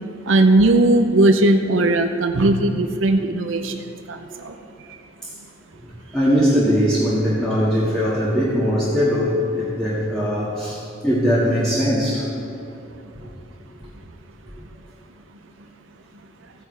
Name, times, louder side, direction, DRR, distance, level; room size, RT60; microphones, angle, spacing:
voice 1, 0.3-3.7 4.1-4.2 4.4-4.5, right 2 dB, 80° right, 6 dB, 0.6 m, -17 dB
voice 2, 5.8-12.3 13.2-13.3, equal, 5° left, -9 dB, 1.8 m, -20 dB
15.0 x 9.7 x 3.3 m, 2.8 s
head